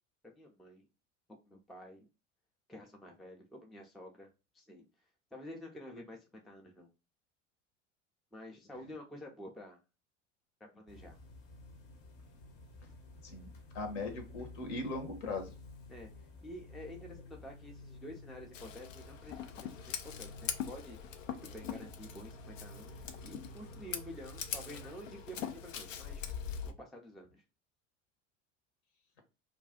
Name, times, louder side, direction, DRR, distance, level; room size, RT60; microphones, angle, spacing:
voice 1, 0.2-0.8 1.5-2.1 2.7-4.3 4.5-4.9 5.3-6.9 8.3-9.8 10.6-11.2 15.9-16.1 16.4-21.0 21.4-26.2 26.8-27.4, equal, ahead, 2 dB, 0.3 m, -49 dB
sound 1, 10.9-24.9, left 1 dB, 35° left, 0.8 m, -53 dB
voice 2, 13.2-15.5, left 3 dB, 60° left, 5 dB, 1.0 m, -39 dB
Scissors, 18.5-26.7, left 8 dB, 80° left, 0.5 m, -42 dB
2.5 x 2.3 x 3.5 m, 0.29 s
figure-of-eight pair, 70°, 38 cm